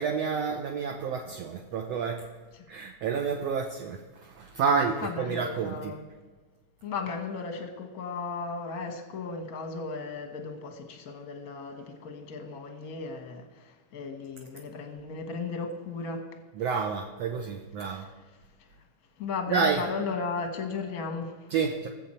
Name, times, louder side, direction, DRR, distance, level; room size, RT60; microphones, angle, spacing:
voice 1, 0.0-2.3 2.7-6.0 16.6-18.1 19.5-19.9 21.5-21.9, right 5 dB, 70° right, 1 dB, 1.7 m, -29 dB
voice 2, 5.0-6.0 6.8-16.3 19.2-21.5, left 4 dB, 50° left, 5 dB, 1.1 m, -35 dB
20.0 x 7.7 x 4.4 m, 1.4 s
omnidirectional pair, 3.6 m